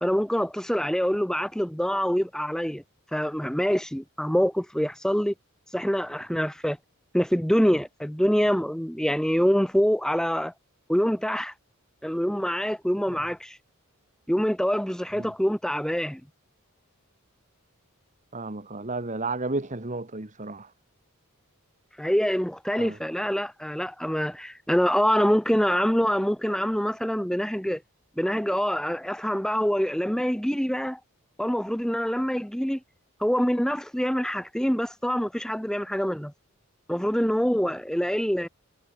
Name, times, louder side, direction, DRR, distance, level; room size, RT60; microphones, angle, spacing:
voice 1, 0.0-2.8 3.1-5.3 5.7-6.8 7.1-10.5 10.9-11.5 12.0-13.6 14.3-16.2 22.0-27.8 28.2-31.0 31.4-32.8 33.2-36.3 36.9-38.5, equal, 5° left, 1.1 m, -25 dB
voice 2, 18.3-20.7 22.8-23.0, right 3 dB, 35° right, 1.5 m, -32 dB
head